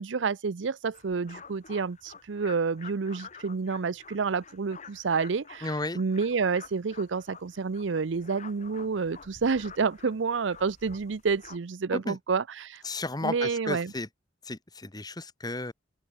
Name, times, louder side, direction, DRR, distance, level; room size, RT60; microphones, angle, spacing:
voice 1, 0.0-12.8 13.2-13.9, right 5 dB, 85° right, 0.6 m, -29 dB
sound 1, 0.9-11.6, left 5 dB, 40° left, 3.0 m, -49 dB
voice 2, 5.6-6.0 11.9-12.2 12.8-14.1 14.5-15.7, left 2 dB, 20° left, 1.5 m, -33 dB
open air
head